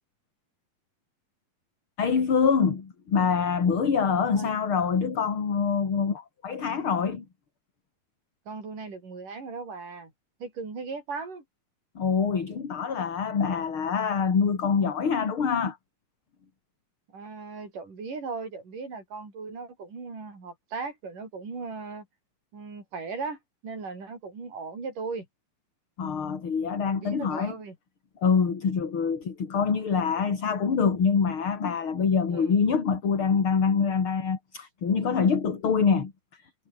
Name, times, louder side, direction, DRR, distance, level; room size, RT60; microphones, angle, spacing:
voice 1, 2.0-7.2 12.0-15.8 26.0-27.5 28.2-36.1, left 6 dB, 35° left, 3.4 m, -25 dB
voice 2, 8.5-10.1 10.4-11.4 17.1-22.1 22.5-23.4 23.6-25.3 26.9-27.8 32.3-32.6, right 4 dB, 60° right, 8.4 m, -37 dB
omnidirectional pair, 4.2 m